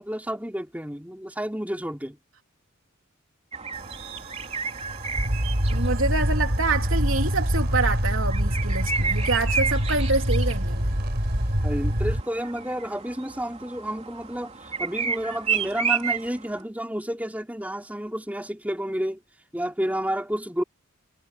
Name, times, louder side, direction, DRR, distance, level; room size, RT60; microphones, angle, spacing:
voice 1, 0.0-2.2 11.6-19.2 19.5-20.6, equal, 5° right, 3.7 m, -30 dB
sound 1, 3.5-16.6, right 6 dB, 30° right, 3.4 m, -32 dB
sound 2, 3.7-12.2, equal, 50° right, 4.3 m, -25 dB
voice 2, 5.7-11.0, right 3 dB, 70° right, 3.4 m, -26 dB
head